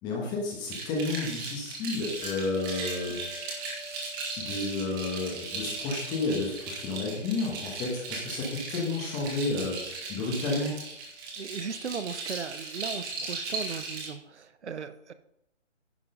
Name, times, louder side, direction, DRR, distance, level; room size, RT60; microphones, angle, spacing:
voice 1, 0.0-3.2 4.4-10.7, left 3 dB, 10° left, -2 dB, 1.3 m, -31 dB
sound 1, 0.7-14.1, right 3 dB, 20° right, 1.9 m, -37 dB
sound 2, 2.2-13.8 14.1-14.2, left 2 dB, 35° left, 2.4 m, -51 dB
voice 2, 11.4-15.1, right 6 dB, 65° right, 11 dB, 1.0 m, -37 dB
10.5 x 6.0 x 5.4 m, 0.80 s
figure-of-eight pair, 150°, 37 cm